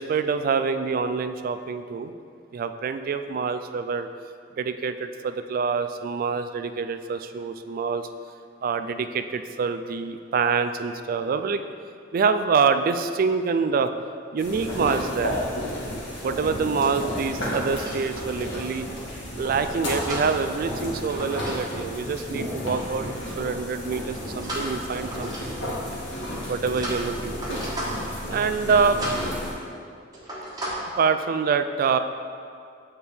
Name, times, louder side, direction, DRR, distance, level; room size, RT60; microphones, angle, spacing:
voice 1, 0.0-2.1 2.5-4.1 4.6-8.1 8.6-11.6 12.1-13.9 14.3-15.4 16.2-18.9 19.4-23.1 23.4-25.3 26.5-27.6 28.3-29.0 31.0-32.0, right 5 dB, 50° right, 9 dB, 0.3 m, -26 dB
sound 1, 14.4-29.5, left 1 dB, 75° left, 1.6 m, -32 dB
sound 2, 16.7-18.0 18.8-19.2 19.8-21.6 21.8-22.1 24.4-25.7 26.3-28.2 28.5-28.7 29.0-29.3 29.7-29.9 30.1-30.7, right 1 dB, 20° right, 1.4 m, -36 dB
8.3 x 4.3 x 3.5 m, 2.3 s
head